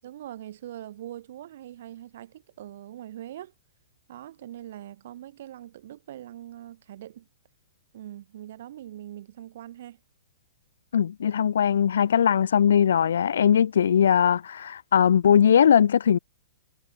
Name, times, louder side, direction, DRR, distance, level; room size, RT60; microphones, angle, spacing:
voice 1, 0.0-3.5 4.1-7.3 7.9-10.0, right 12 dB, 60° right, 7.3 m, -42 dB
voice 2, 10.9-16.2, left 8 dB, 70° left, 1.2 m, -20 dB
hypercardioid pair, 115°, 0 cm